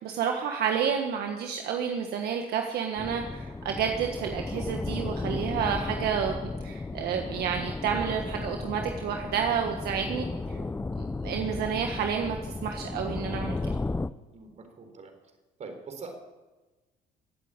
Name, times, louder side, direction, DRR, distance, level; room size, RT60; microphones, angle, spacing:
voice 1, 0.0-10.6 11.0-13.6, right 7 dB, 70° right, 3 dB, 1.5 m, -30 dB
sound 1, 3.0-14.1, left 3 dB, 15° left, 0.5 m, -34 dB
voice 2, 14.3-15.1 15.6-16.1, right 4 dB, 45° right, 5 dB, 4.0 m, -43 dB
16.5 x 8.7 x 8.8 m, 1.2 s
cardioid pair, 110°, 17 cm